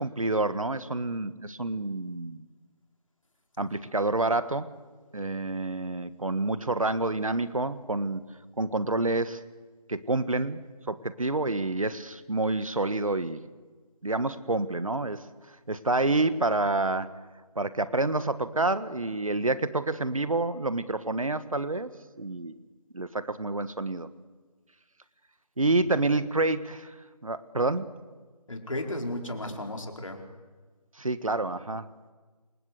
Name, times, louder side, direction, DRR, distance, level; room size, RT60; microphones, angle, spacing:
voice 1, 0.0-2.5 3.6-4.8 5.1-8.2 8.6-9.4 9.9-10.6 10.9-13.4 14.0-15.3 15.7-17.1 17.5-21.9 22.2-22.5 22.9-24.1 25.6-26.9 27.2-27.9 31.0-31.9, right 2 dB, 55° right, 14 dB, 1.5 m, -28 dB
voice 2, 25.7-26.0 28.5-30.2, left 1 dB, 50° left, 3 dB, 4.7 m, -35 dB
27.5 x 26.0 x 7.9 m, 1.4 s
figure-of-eight pair, 175°, 20 cm